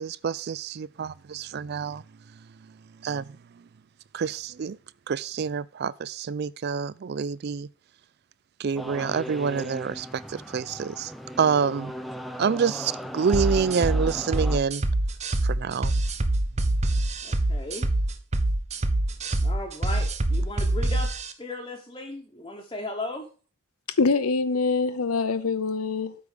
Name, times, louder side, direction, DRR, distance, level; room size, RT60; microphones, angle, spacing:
voice 1, 0.0-2.0 3.0-3.3 4.1-4.8 5.1-7.7 8.6-11.1 11.4-11.9 12.4-14.8 15.4-15.9, right 6 dB, 50° right, 0.3 m, -27 dB
sound 1, 8.8-14.6, equal, ahead, 0.6 m, -38 dB
sound 2, 13.3-21.3, right 1 dB, 30° right, 0.8 m, -25 dB
voice 2, 17.2-17.9 19.4-21.1 21.4-23.3, left 2 dB, 20° left, 1.0 m, -36 dB
voice 3, 24.0-26.2, left 4 dB, 85° left, 0.8 m, -24 dB
8.3 x 5.1 x 6.7 m
head